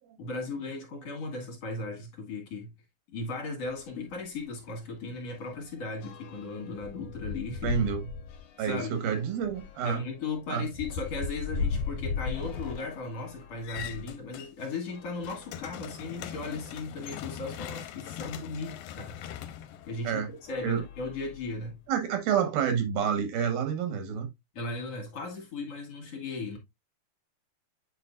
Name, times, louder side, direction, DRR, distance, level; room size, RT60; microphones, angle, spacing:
voice 1, 0.2-2.7 3.1-7.8 8.6-9.0 9.8-19.2 19.9-21.8 24.6-26.6, left 3 dB, 50° left, 2.4 m, -37 dB
sound 1, 3.6-3.8 4.2-4.3 4.6-14.1 14.8-16.2 16.9-17.0 17.2-17.3 19.0-19.2 19.8-20.0 20.4-21.7, left 5 dB, 70° left, 2.1 m, -38 dB
voice 2, 7.6-8.1 8.6-10.0 10.5-10.6 20.0-20.3 20.6-20.8 21.9-24.3, right 7 dB, 90° right, 3.3 m, -28 dB
sound 2, 13.6-14.8 15.1-20.4, left 10 dB, 90° left, 2.4 m, -42 dB
8.9 x 4.4 x 2.4 m
omnidirectional pair, 4.0 m